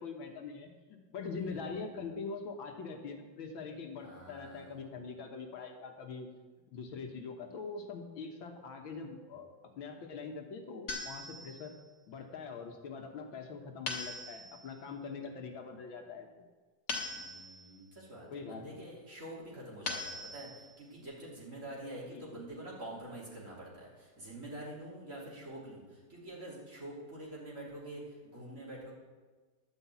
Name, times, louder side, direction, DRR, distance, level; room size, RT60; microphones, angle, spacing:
voice 1, 0.0-6.3 6.7-9.5 9.8-11.7 12.1-16.3 18.3-18.8 22.0-22.4, left 4 dB, 70° left, 3 dB, 1.8 m, -43 dB
voice 2, 1.4-1.8 4.0-4.7 17.0-28.9, right 1 dB, 35° right, -6 dB, 3.3 m, -46 dB
sound 1, 10.9-11.8 13.9-14.7 16.9-17.8 19.9-20.8, left 3 dB, 55° left, 1.8 m, -40 dB
11.5 x 5.7 x 8.1 m, 1.4 s
omnidirectional pair, 2.3 m